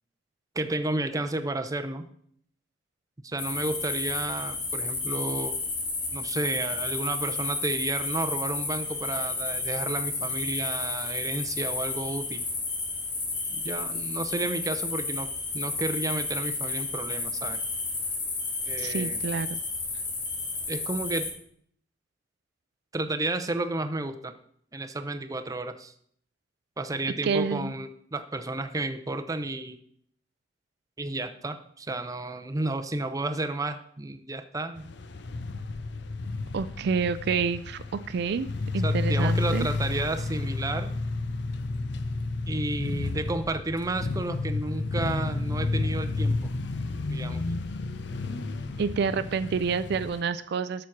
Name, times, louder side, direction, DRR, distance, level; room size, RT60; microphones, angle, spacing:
voice 1, 0.5-2.1 3.2-5.6 6.1-12.4 13.5-17.6 18.6-19.2 20.7-21.4 22.9-24.3 24.7-25.9 26.8-29.8 31.0-34.9 38.8-40.9 42.5-46.5 47.1-47.4, right 2 dB, 20° right, 8 dB, 0.6 m, -32 dB
sound 1, 3.4-21.3, left 3 dB, 85° left, 2.8 m, -32 dB
voice 2, 18.8-19.6 27.2-27.7 36.5-38.5 38.7-39.7 48.8-50.9, right 5 dB, 65° right, 13 dB, 0.4 m, -28 dB
sound 2, 34.8-50.2, left 3 dB, 70° left, 0.6 m, -31 dB
7.2 x 6.3 x 5.9 m, 0.64 s
head